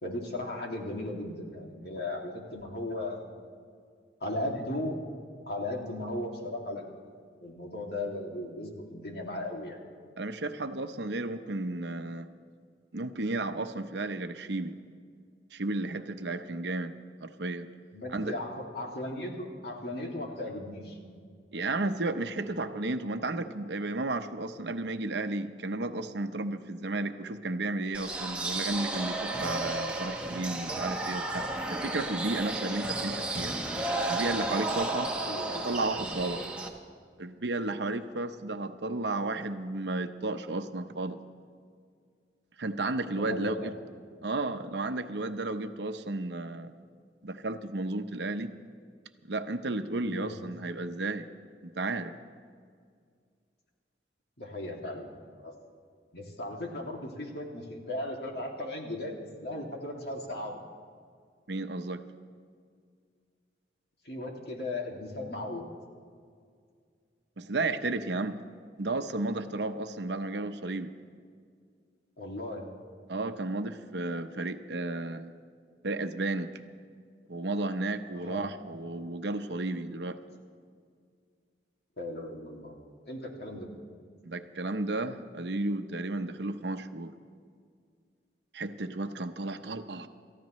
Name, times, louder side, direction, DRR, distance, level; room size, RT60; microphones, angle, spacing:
voice 1, 0.0-3.5 4.2-5.0 5.5-6.8 7.4-9.8 17.9-21.0 35.2-35.7 43.1-43.7 50.1-50.3 54.4-55.5 56.1-60.6 64.0-65.7 72.2-72.7 78.1-78.5 82.0-82.7 83.1-83.7, left 1 dB, 60° left, -1 dB, 2.4 m, -37 dB
voice 2, 10.2-12.3 12.9-14.7 15.5-17.7 18.1-18.4 21.5-33.6 34.1-35.1 35.5-36.4 37.2-41.2 42.6-43.7 44.2-46.8 47.2-48.5 49.3-51.3 51.6-52.1 61.5-62.0 67.4-68.4 68.8-70.9 73.1-75.3 75.8-76.6 77.3-80.2 84.2-87.1 88.5-90.1, right 2 dB, 75° right, 8 dB, 0.8 m, -33 dB
sound 1, 27.9-36.7, right 2 dB, 5° right, 1.1 m, -33 dB
28.5 x 14.5 x 3.1 m, 2.1 s
head